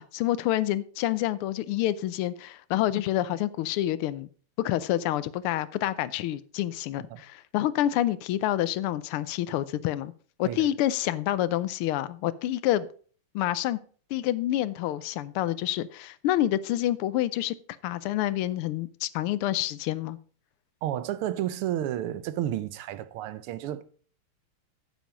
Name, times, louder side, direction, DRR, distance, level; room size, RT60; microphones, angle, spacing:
voice 1, 0.0-4.3 4.6-10.1 10.4-12.9 13.3-13.8 14.1-17.5 17.8-20.2, left 13 dB, 85° left, 1.5 m, -28 dB
voice 2, 20.8-23.8, right 12 dB, 85° right, 1.7 m, -31 dB
9.2 x 7.2 x 5.1 m
omnidirectional pair, 2.4 m